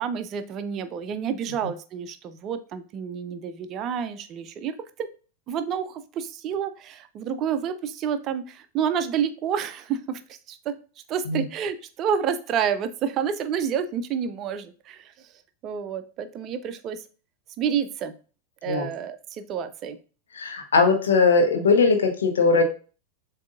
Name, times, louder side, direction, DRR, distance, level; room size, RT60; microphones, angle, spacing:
voice 1, 0.0-5.1 5.5-10.7 11.1-15.1 15.6-17.0 17.6-18.1 18.6-20.0, right 7 dB, 35° right, 10 dB, 0.4 m, -29 dB
voice 2, 20.3-22.6, left 4 dB, 65° left, 4 dB, 1.0 m, -20 dB
7.1 x 2.7 x 2.5 m, 0.37 s
figure-of-eight pair, 90°, 0 cm